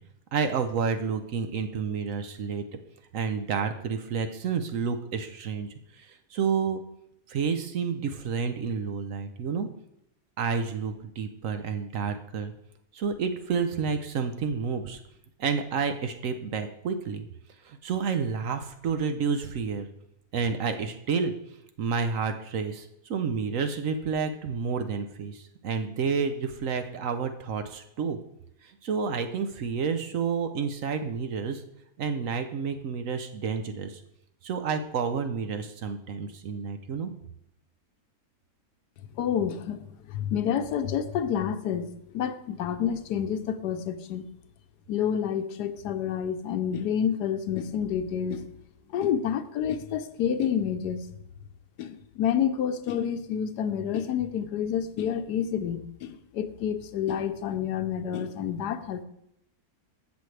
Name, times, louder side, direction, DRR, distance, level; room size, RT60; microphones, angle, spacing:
voice 1, 0.3-2.6 3.1-5.7 6.0-6.8 7.3-9.7 10.4-12.5 12.9-15.0 15.4-17.3 17.6-19.9 20.3-21.3 21.8-28.2 28.6-31.6 32.0-34.0 34.4-37.1, right 5 dB, 60° right, 8 dB, 1.0 m, -30 dB
voice 2, 39.2-44.2 44.9-48.5 48.9-51.1 51.8-59.0, left 8 dB, 85° left, 10 dB, 1.3 m, -29 dB
15.5 x 6.2 x 3.3 m, 0.80 s
omnidirectional pair, 1.7 m